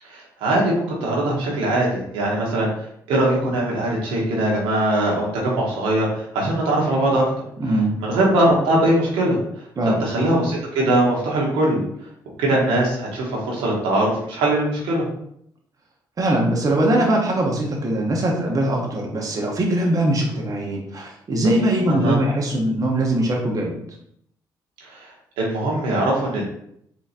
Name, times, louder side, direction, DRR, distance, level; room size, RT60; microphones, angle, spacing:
voice 1, 0.1-2.7 3.1-7.2 8.0-9.4 9.8-11.8 12.4-15.1 21.9-22.2 24.9-25.1 25.4-26.4, right 1 dB, 90° right, -3 dB, 1.0 m, -21 dB
voice 2, 7.6-7.9 9.8-10.0 16.2-23.8, right 1 dB, 45° right, -1 dB, 0.9 m, -21 dB
4.0 x 2.9 x 2.5 m, 0.71 s
supercardioid pair, 65°, 9 cm